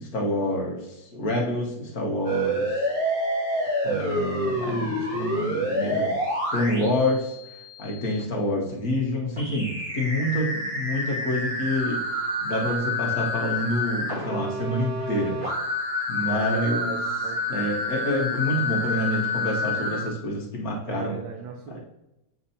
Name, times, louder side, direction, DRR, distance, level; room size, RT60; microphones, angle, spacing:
voice 1, 0.0-2.8 3.8-6.1 6.5-7.3 7.8-12.0 12.4-15.4 16.1-17.0 17.5-21.2 21.7-21.8, left 1 dB, 50° left, -1 dB, 1.7 m, -27 dB
sound 1, 2.2-8.2 9.4-20.1, left 1 dB, 25° right, 2.1 m, -28 dB
voice 2, 16.2-17.5 18.6-18.7 20.9-21.8, right 5 dB, 80° right, 2 dB, 1.4 m, -37 dB
6.9 x 5.4 x 2.7 m, 0.90 s
omnidirectional pair, 2.1 m